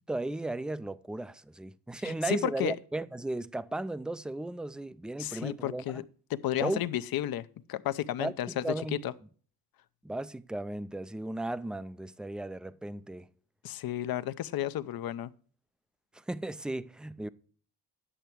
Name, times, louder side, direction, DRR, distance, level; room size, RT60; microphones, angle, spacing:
voice 1, 0.1-6.0 6.6-6.9 8.2-9.0 10.0-13.3 16.1-17.3, right 2 dB, ahead, 0.3 m, -35 dB
voice 2, 2.0-2.8 5.2-6.0 6.3-8.6 8.9-9.1 13.6-15.3, left 12 dB, 60° left, 0.7 m, -32 dB
10.0 x 6.8 x 4.5 m
cardioid pair, 95°, 40 cm